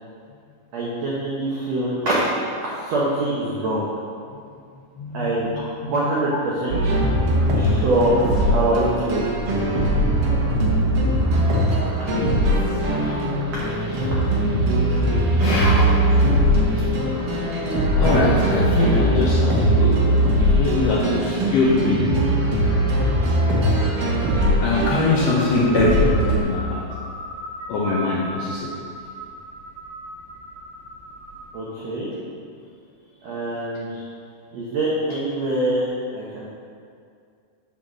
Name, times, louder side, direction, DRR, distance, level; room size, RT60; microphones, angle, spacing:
voice 1, 0.7-2.2 2.8-3.9 5.1-5.5 5.8-6.8 7.5-9.2 12.8-13.1 13.9-14.1 31.5-32.1 33.2-34.0 34.5-35.9 36.1-36.4, right 1 dB, 75° right, -6 dB, 1.6 m, -24 dB
voice 2, 5.0-5.9 12.1-12.3 14.9-15.0 15.4-16.3 18.0-20.0 20.4-22.1 24.6-26.0 26.4-26.8 27.7-28.7, left 3 dB, 75° left, -4 dB, 2.0 m, -23 dB
sound 1, 6.7-26.4, right 1 dB, 90° right, 1.2 m, -20 dB
sound 2, 23.0-31.5, right 1 dB, 45° right, 2.3 m, -37 dB
8.7 x 4.0 x 6.2 m, 2.3 s
omnidirectional pair, 4.5 m